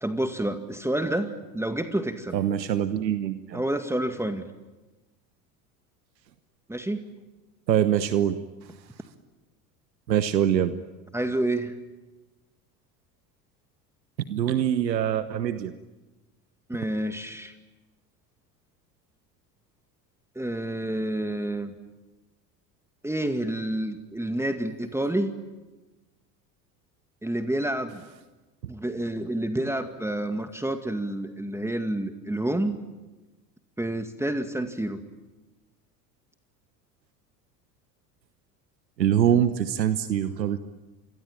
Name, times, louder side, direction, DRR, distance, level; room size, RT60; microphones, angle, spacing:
voice 1, 0.0-2.4 3.5-4.5 6.7-7.1 11.1-11.7 16.7-17.5 20.4-21.7 23.0-25.3 27.2-28.0 28.7-32.8 33.8-35.0 39.3-39.4, right 1 dB, 5° right, 8 dB, 2.0 m, -29 dB
voice 2, 2.3-3.6 7.7-8.4 10.1-10.7 14.3-15.7 39.0-40.6, right 10 dB, 85° right, 12 dB, 1.2 m, -24 dB
27.5 x 23.0 x 9.1 m, 1.1 s
hypercardioid pair, 75°, 50 cm